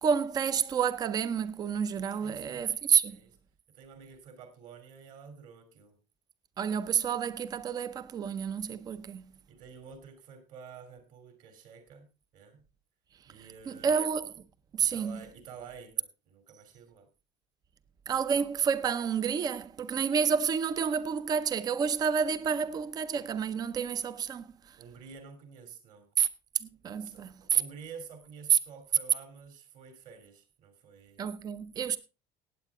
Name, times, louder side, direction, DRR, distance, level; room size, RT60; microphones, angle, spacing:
voice 1, 0.0-3.2 6.6-9.3 13.7-14.3 14.7-15.2 18.1-24.8 26.2-26.3 26.6-27.6 28.5-28.6 31.2-32.0, right 7 dB, 25° right, 0.6 m, -29 dB
voice 2, 2.2-2.7 3.1-3.4 3.7-6.0 9.5-12.6 13.3-13.9 14.8-17.1 24.8-26.1 27.0-31.3, right 6 dB, 50° right, 3.0 m, -49 dB
16.0 x 9.1 x 3.6 m
cardioid pair, 180°, 17 cm